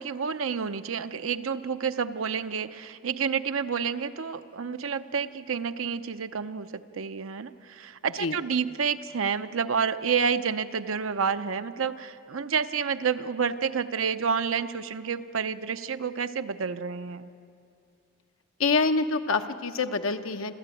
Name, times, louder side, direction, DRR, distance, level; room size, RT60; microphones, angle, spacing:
voice 1, 0.0-17.3, right 6 dB, 75° right, 11 dB, 0.7 m, -29 dB
voice 2, 18.6-20.5, left 4 dB, 75° left, 8 dB, 0.9 m, -26 dB
26.0 x 14.5 x 9.1 m, 2.5 s
head